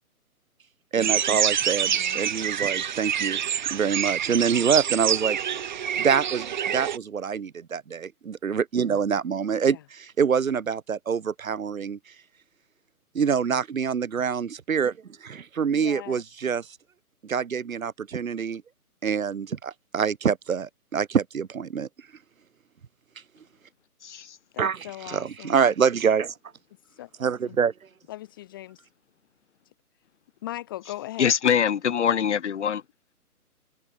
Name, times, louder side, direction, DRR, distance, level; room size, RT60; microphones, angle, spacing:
voice 1, 0.9-3.4 3.7-5.6 6.0-12.0 13.1-16.7 17.2-18.6 19.0-21.9 24.6-26.3 27.2-27.7, right 6 dB, 60° right, 2.6 m, -26 dB
sound 1, 1.0-7.0, right 9 dB, 30° right, 1.0 m, -26 dB
voice 2, 1.8-2.2 9.6-9.8 15.7-16.2 24.5-25.6 26.9-27.6 28.1-28.8 30.4-31.3, left 15 dB, 15° left, 0.9 m, -39 dB
voice 3, 24.0-24.4 31.2-32.8, left 8 dB, 50° left, 2.3 m, -23 dB
hypercardioid pair, 150°, 46 cm